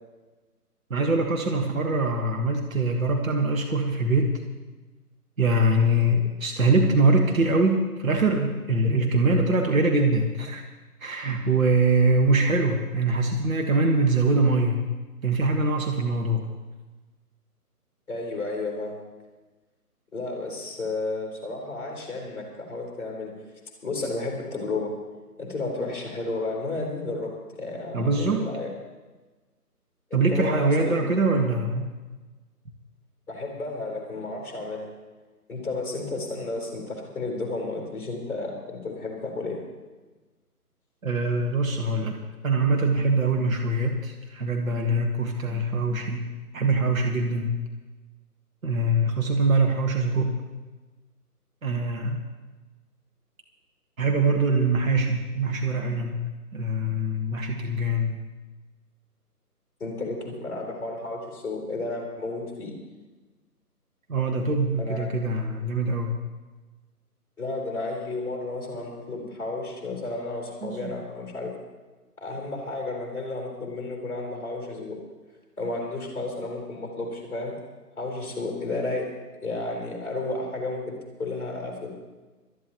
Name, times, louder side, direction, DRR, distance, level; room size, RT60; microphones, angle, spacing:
voice 1, 0.9-4.4 5.4-10.6 11.0-14.8 15.2-16.5 27.9-28.4 30.1-31.9 41.0-42.2 42.4-46.2 46.5-47.5 48.6-50.4 51.6-52.2 54.0-56.2 56.5-58.2 64.1-66.1 70.6-70.9, right 2 dB, 55° right, 2 dB, 1.5 m, -23 dB
voice 2, 18.1-19.0 20.1-23.3 23.8-24.9 25.4-27.3 27.6-28.7 30.1-31.0 33.3-34.9 35.5-39.6 59.8-62.7 64.8-65.1 67.4-71.5 72.2-75.0 75.6-77.5 78.0-79.1 79.4-80.9 81.2-81.9, left 2 dB, 5° left, -3 dB, 3.4 m, -32 dB
22.0 x 13.5 x 3.0 m, 1.3 s
figure-of-eight pair, 150°, 47 cm